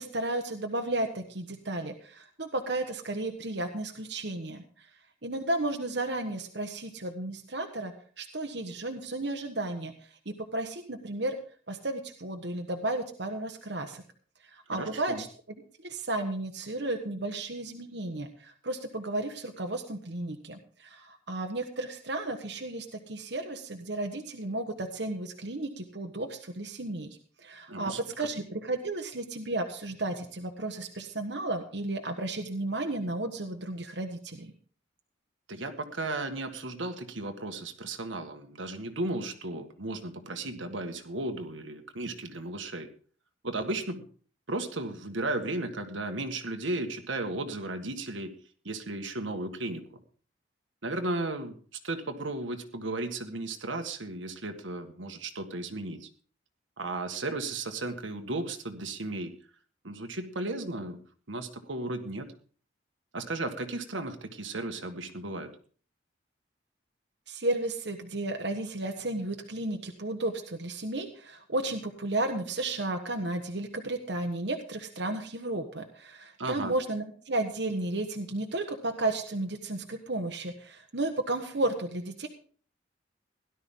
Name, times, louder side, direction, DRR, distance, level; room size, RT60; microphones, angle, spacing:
voice 1, 0.0-4.6 5.2-9.9 10.2-11.3 11.7-14.0 14.4-15.3 15.8-34.5 67.3-82.3, right 2 dB, 60° right, 4 dB, 1.4 m, -33 dB
voice 2, 14.7-15.2 27.7-28.0 35.5-42.9 43.4-44.1 44.5-48.3 48.7-50.0 50.8-51.6 51.8-56.1 56.8-59.3 59.8-62.3 63.1-65.5 76.4-76.7, right 2 dB, 80° right, 6 dB, 1.7 m, -35 dB
17.0 x 12.0 x 3.8 m, 0.43 s
head